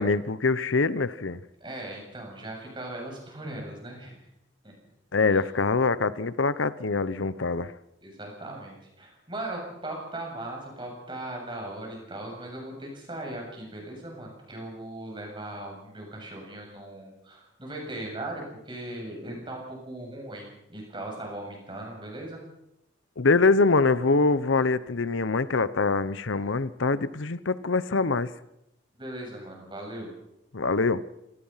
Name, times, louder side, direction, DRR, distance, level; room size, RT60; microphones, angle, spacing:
voice 1, 0.0-1.4 5.1-7.7 23.2-28.3 30.5-31.0, left 3 dB, 75° left, 16 dB, 0.8 m, -24 dB
voice 2, 1.6-4.2 4.6-4.7 5.3-5.4 8.0-22.4 28.9-30.1, right 1 dB, 25° right, 0 dB, 7.6 m, -38 dB
26.5 x 19.5 x 5.7 m, 0.84 s
head